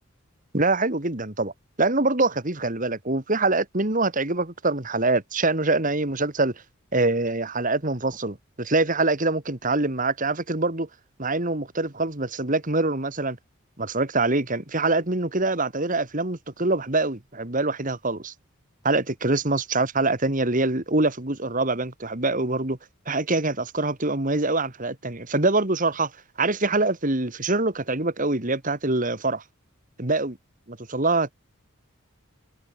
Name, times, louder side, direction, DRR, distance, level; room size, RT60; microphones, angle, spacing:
voice 1, 0.5-1.5 1.8-6.5 6.9-10.9 11.2-13.4 13.8-18.3 18.8-22.8 23.1-26.1 26.4-29.4 30.0-30.4 30.7-31.3, right 2 dB, 40° right, 2.4 m, -24 dB
head